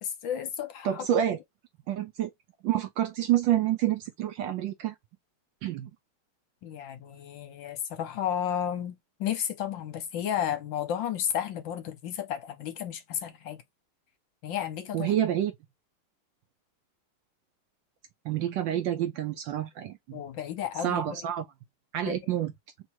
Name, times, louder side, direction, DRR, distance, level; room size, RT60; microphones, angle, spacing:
voice 1, 0.0-1.0 6.6-13.6 14.4-15.1 20.1-21.3 22.1-22.2, left 9 dB, 70° left, 1.4 m, -33 dB
voice 2, 0.8-1.4 1.9-2.3 2.6-4.9 5.6-5.9 14.9-15.5 18.2-20.2 20.8-21.4 21.9-22.5, right 11 dB, 75° right, 1.1 m, -28 dB
3.5 x 2.8 x 4.3 m
omnidirectional pair, 2.4 m